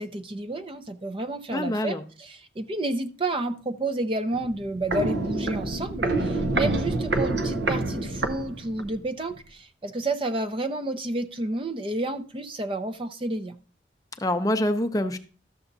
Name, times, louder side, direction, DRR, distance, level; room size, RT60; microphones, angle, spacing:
voice 1, 0.0-13.6, right 2 dB, 30° right, 10 dB, 0.5 m, -30 dB
voice 2, 1.5-2.1 14.2-15.2, left 1 dB, 20° left, 8 dB, 0.5 m, -25 dB
Walk footsteps, 4.3-9.0 9.3-9.4, right 2 dB, 75° right, 0.7 m, -27 dB
12.5 x 6.9 x 2.6 m, 0.37 s
head